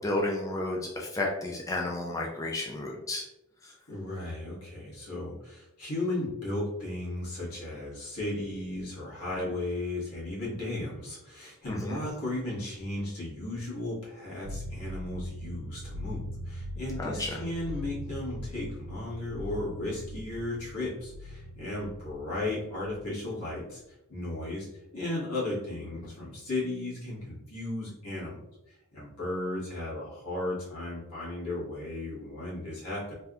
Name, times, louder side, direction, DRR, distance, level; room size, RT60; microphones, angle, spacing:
voice 1, 0.0-3.2 3.6-3.7 11.7-12.0 17.0-17.4, left 2 dB, 15° left, -1 dB, 0.3 m, -32 dB
voice 2, 3.9-23.8 24.1-28.4 28.7-33.1, left 2 dB, 85° left, -7 dB, 1.4 m, -35 dB
sound 1, 14.4-23.6, equal, 70° right, 0.4 m, -41 dB
3.3 x 2.6 x 2.3 m, 0.91 s
head